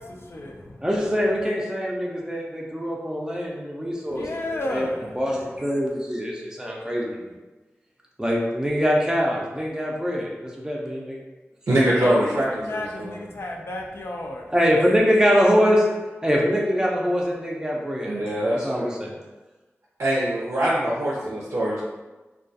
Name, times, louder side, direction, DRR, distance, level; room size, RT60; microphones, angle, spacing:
voice 1, 0.0-0.8 4.1-5.2 12.0-14.5, left 1 dB, 60° left, 1 dB, 0.4 m, -33 dB
voice 2, 0.8-4.9 5.2-7.3 8.2-10.3 10.6-11.2 14.5-15.9 16.2-19.1, equal, 15° right, -3 dB, 0.5 m, -23 dB
voice 3, 11.7-12.5 12.7-13.1 18.0-18.9 20.0-21.9, right 1 dB, 80° right, -6 dB, 0.4 m, -23 dB
2.3 x 2.2 x 2.6 m, 1.2 s
wide cardioid pair, 55°, 5 cm